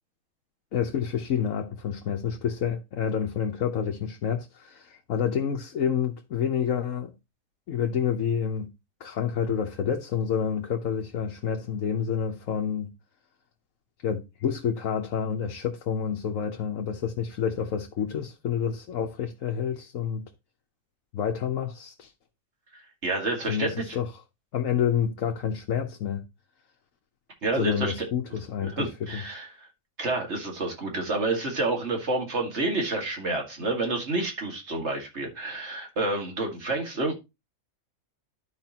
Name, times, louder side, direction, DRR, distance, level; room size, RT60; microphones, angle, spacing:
voice 1, 0.7-7.1 7.7-8.7 9.0-12.9 14.0-20.2 21.1-22.1 23.4-24.1 24.5-26.2 27.6-29.2, left 8 dB, 75° left, 1.3 m, -28 dB
voice 2, 23.0-24.0 27.4-27.9 28.6-29.7 30.0-37.1, right 2 dB, 55° right, 2.2 m, -29 dB
12.5 x 4.8 x 2.9 m
omnidirectional pair, 1.4 m